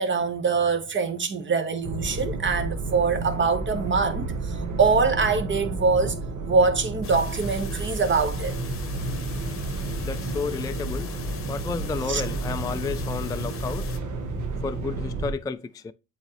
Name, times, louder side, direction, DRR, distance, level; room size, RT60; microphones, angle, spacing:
voice 1, 0.0-6.2 6.5-8.6 12.1-12.2, right 4 dB, 40° right, 1.1 m, -24 dB
sound 1, 1.8-15.3, right 3 dB, 75° right, 1.4 m, -31 dB
sound 2, 7.0-14.0, left 4 dB, 45° left, 0.8 m, -37 dB
voice 2, 10.0-13.9 14.6-15.9, left 4 dB, 15° left, 0.3 m, -32 dB
8.2 x 3.8 x 3.0 m
cardioid pair, 90°, 30 cm